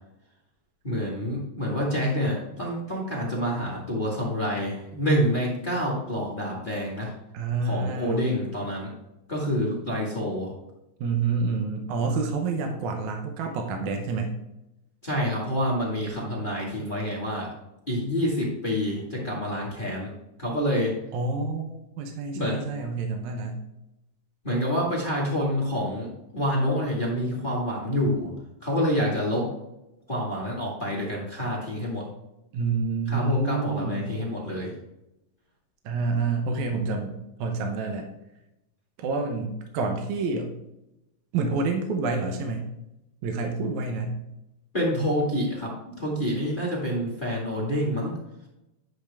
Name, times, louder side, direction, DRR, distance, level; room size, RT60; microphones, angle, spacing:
voice 1, 0.8-7.1 7.6-8.9 9.3-10.5 15.0-17.5 17.9-20.1 20.4-20.9 22.3-22.6 24.4-26.1 26.3-28.3 28.6-29.5 30.1-32.0 33.1-34.7 44.7-48.1, equal, 25° left, -4 dB, 1.1 m, -27 dB
voice 2, 7.3-8.3 11.0-14.3 21.1-23.6 32.5-34.1 35.9-38.1 39.0-40.5 41.3-42.6 43.2-44.2, right 4 dB, 70° right, 3 dB, 2.0 m, -28 dB
10.5 x 6.0 x 3.4 m, 0.91 s
omnidirectional pair, 4.1 m